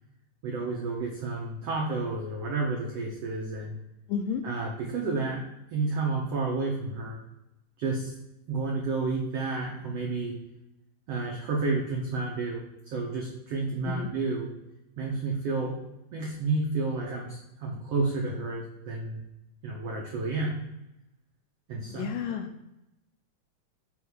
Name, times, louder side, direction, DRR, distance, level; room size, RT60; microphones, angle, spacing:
voice 1, 0.4-3.8 4.4-5.4 5.7-7.2 7.8-8.1 8.5-10.3 11.1-14.5 15.0-15.8 16.1-19.2 19.6-20.6 21.7-22.4, right 3 dB, 90° right, -1 dB, 1.3 m, -31 dB
voice 2, 4.1-4.4 13.8-14.1 21.9-22.5, left 7 dB, 80° left, 5 dB, 2.0 m, -31 dB
6.5 x 3.7 x 6.2 m, 0.90 s
omnidirectional pair, 4.3 m